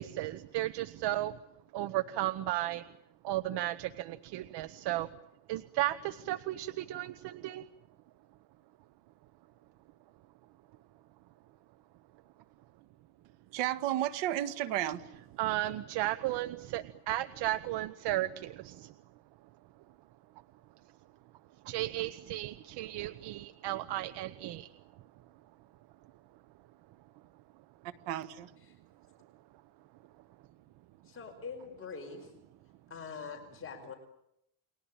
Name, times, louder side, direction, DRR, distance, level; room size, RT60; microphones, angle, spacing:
voice 1, 0.0-1.4 1.7-2.8 3.2-5.1 5.5-7.6 15.4-18.9 21.6-24.7, right 15 dB, 65° right, 14 dB, 1.1 m, -34 dB
voice 2, 13.5-15.0 27.8-28.5, right 13 dB, 85° right, 12 dB, 1.9 m, -33 dB
voice 3, 31.0-32.3 32.9-33.9, left 5 dB, 30° left, 3 dB, 5.1 m, -43 dB
30.0 x 22.0 x 9.0 m, 0.81 s
cardioid pair, 145°, 43 cm